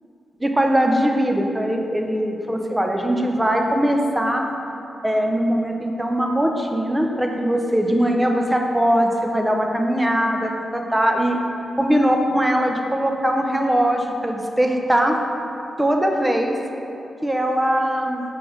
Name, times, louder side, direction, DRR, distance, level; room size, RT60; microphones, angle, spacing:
voice 1, 0.4-4.4 5.0-11.4 11.8-15.2 15.8-16.5 17.2-18.2, equal, 10° right, 2 dB, 0.6 m, -21 dB
5.9 x 3.8 x 4.6 m, 2.8 s
cardioid pair, 85°, 0 cm